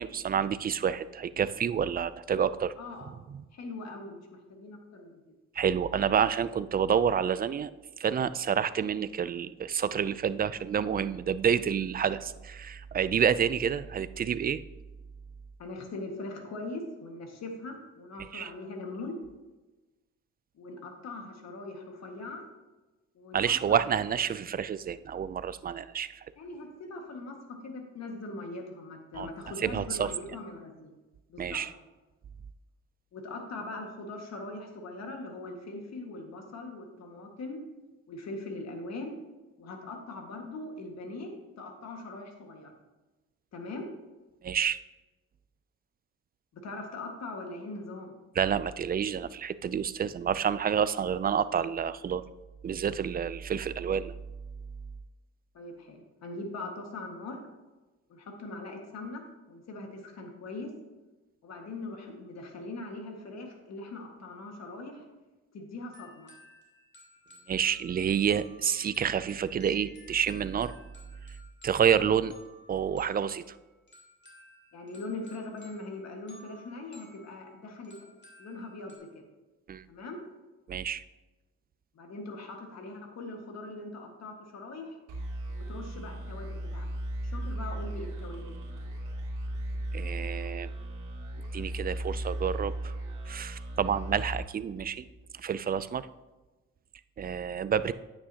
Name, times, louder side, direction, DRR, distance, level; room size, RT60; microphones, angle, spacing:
voice 1, 0.0-2.7 3.3-3.4 5.6-7.7 8.0-14.6 18.3-18.5 23.3-26.3 29.2-29.3 29.6-30.1 31.4-31.7 44.4-44.8 48.4-52.2 52.6-54.2 67.5-70.7 71.6-72.3 72.7-73.4 79.7-79.8 80.7-81.0 89.9-90.7 91.5-92.9 93.3-95.0 95.3-96.1 97.2-97.9, right 8 dB, 30° right, 15 dB, 0.4 m, -28 dB
voice 2, 2.8-3.2 3.5-5.2 15.6-19.2 20.5-22.4 23.1-24.2 26.4-30.9 31.3-31.6 33.1-37.6 38.1-39.2 39.6-42.7 43.5-43.9 46.5-48.1 55.5-57.4 58.1-60.7 61.4-65.1 65.5-66.3 74.7-77.9 78.4-79.2 79.9-80.2 81.9-85.0 85.5-86.9 87.2-88.6, left 2 dB, 60° left, 3 dB, 1.8 m, -41 dB
sound 1, 65.9-79.0, left 1 dB, 35° left, 2.8 m, -56 dB
sound 2, 85.1-95.4, right 1 dB, 85° right, 2.1 m, -36 dB
9.6 x 8.8 x 2.8 m, 1.1 s
cardioid pair, 90°, 30 cm